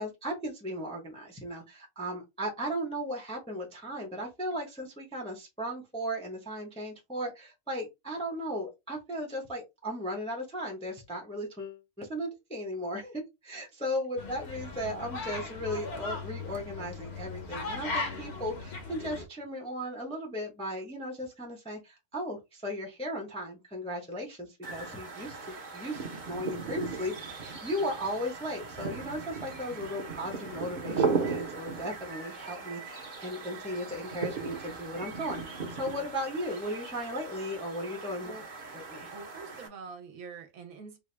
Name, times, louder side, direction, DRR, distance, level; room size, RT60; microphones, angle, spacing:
voice 1, 0.0-38.3 38.7-39.1, equal, 5° left, 0.6 m, -36 dB
sound 1, 14.2-19.3, left 3 dB, 50° left, 0.9 m, -38 dB
sound 2, 24.6-39.7, right 5 dB, 40° right, 0.8 m, -37 dB
voice 2, 39.1-41.0, right 4 dB, 65° right, 1.1 m, -45 dB
3.5 x 2.3 x 3.3 m
omnidirectional pair, 1.6 m